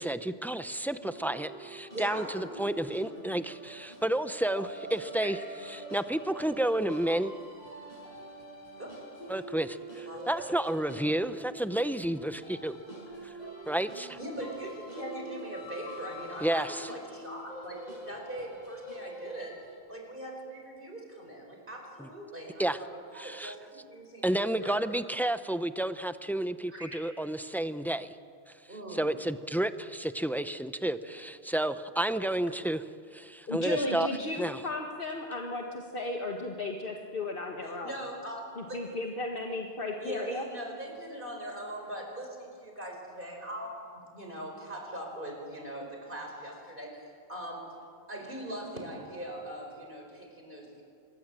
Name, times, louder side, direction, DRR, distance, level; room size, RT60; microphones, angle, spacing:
voice 1, 0.0-5.4 5.7-7.3 9.3-12.8 13.2-13.3 13.7-14.2 16.4-16.9 22.0-22.1 22.6-22.8 23.1-23.5 24.2-28.1 28.9-32.8 33.1-34.1 34.4-34.6, right 1 dB, ahead, 11 dB, 0.5 m, -31 dB
sound 1, 1.0-19.8, right 1 dB, 40° left, 7.0 m, -45 dB
voice 2, 1.9-2.3 7.8-7.9 8.8-9.0 10.0-10.5 14.2-19.6 19.9-24.8 26.7-27.0 28.7-29.2 31.0-31.1 31.7-31.8 37.6-38.4 38.7-38.8 40.0-47.8 48.1-50.8, right 1 dB, 55° right, 1 dB, 5.0 m, -41 dB
voice 3, 33.5-38.0 38.6-40.4, left 2 dB, 60° left, 1 dB, 1.8 m, -35 dB
26.0 x 22.5 x 7.5 m, 2.2 s
omnidirectional pair, 1.1 m